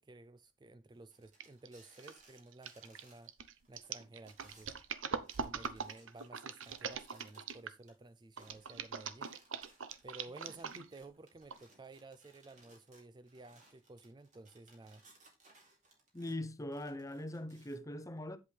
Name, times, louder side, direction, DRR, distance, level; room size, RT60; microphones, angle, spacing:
voice 1, 0.0-3.3 3.7-4.8 5.4-9.3 10.0-15.0, right 2 dB, 20° right, 0.4 m, -54 dB
sound 1, 1.1-3.3 3.6-7.9 8.3-16.4 16.7-17.8, right 2 dB, 40° right, 3.3 m, -65 dB
sound 2, 1.4-1.7 2.0-7.8 8.4-11.0 11.5-11.6, right 6 dB, 80° right, 0.8 m, -42 dB
voice 2, 16.1-18.4, left 1 dB, 15° left, 0.7 m, -41 dB
8.5 x 8.0 x 3.3 m
head